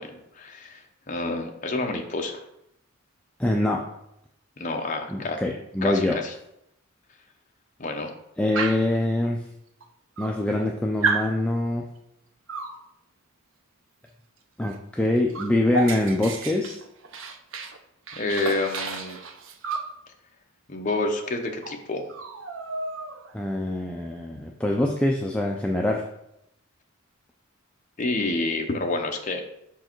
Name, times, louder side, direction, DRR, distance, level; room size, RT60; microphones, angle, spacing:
voice 1, 0.0-2.4 4.6-5.4 5.8-6.3 7.8-8.1 18.2-19.2 20.7-22.1 28.0-29.4, left 2 dB, 35° left, 3 dB, 0.8 m, -28 dB
voice 2, 3.4-3.8 5.1-6.2 8.4-9.4 10.2-11.8 14.6-16.8 23.3-26.0, left 1 dB, 5° left, 0 dB, 0.4 m, -24 dB
Dog, 8.5-9.0 9.8-9.9 10.2-10.7 11.0-11.3 12.5-12.8 14.6-14.8 15.0-17.8 18.1-19.9 21.2-21.3 21.6-21.8 22.1-23.3, right 4 dB, 65° right, 0.6 m, -31 dB
6.2 x 4.6 x 4.5 m, 0.80 s
head